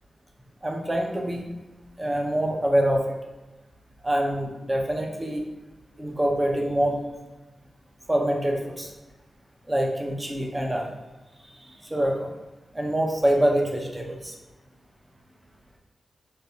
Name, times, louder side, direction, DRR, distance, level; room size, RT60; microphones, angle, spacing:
voice 1, 0.6-1.5 2.0-3.0 4.0-5.4 6.0-7.0 8.1-8.9 9.7-10.9 11.6-12.3 12.7-14.4, right 1 dB, 20° right, 0 dB, 0.8 m, -25 dB
6.5 x 2.2 x 2.7 m, 1.1 s
cardioid pair, 75°, 0 cm